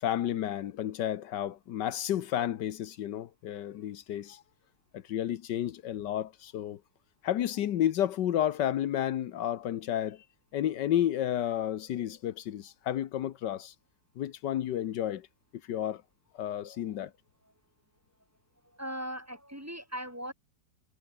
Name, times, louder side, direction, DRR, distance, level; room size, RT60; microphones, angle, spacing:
voice 1, 0.0-4.4 4.9-6.8 7.2-10.2 10.5-13.7 14.2-15.3 15.7-16.0 16.3-17.1, left 11 dB, 85° left, 1.6 m, -31 dB
voice 2, 16.6-17.1 18.6-20.3, equal, 10° right, 7.6 m, -40 dB
omnidirectional pair, 1.8 m